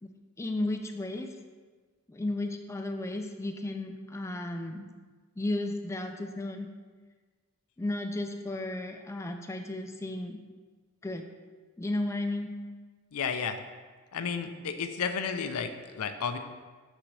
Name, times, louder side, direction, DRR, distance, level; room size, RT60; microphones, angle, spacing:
voice 1, 0.4-1.3 2.1-4.8 5.4-6.7 7.8-10.4 11.0-11.3 11.8-12.6, left 2 dB, 15° left, 5 dB, 0.3 m, -34 dB
voice 2, 13.1-13.6 14.1-16.4, left 6 dB, 80° left, 8 dB, 0.5 m, -32 dB
6.1 x 6.0 x 3.3 m, 1.4 s
head